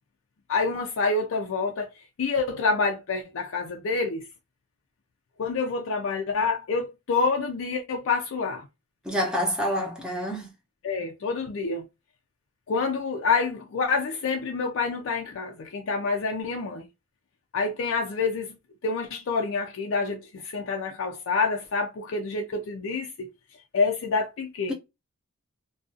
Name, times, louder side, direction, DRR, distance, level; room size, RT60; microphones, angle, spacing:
voice 1, 0.5-1.9 2.2-4.2 5.4-8.7 10.8-11.8 12.7-16.9 17.5-18.6 18.8-23.3 23.7-24.7, left 4 dB, 65° left, 0.4 m, -27 dB
voice 2, 9.0-10.5, equal, 5° right, 0.6 m, -27 dB
2.4 x 2.3 x 2.5 m
head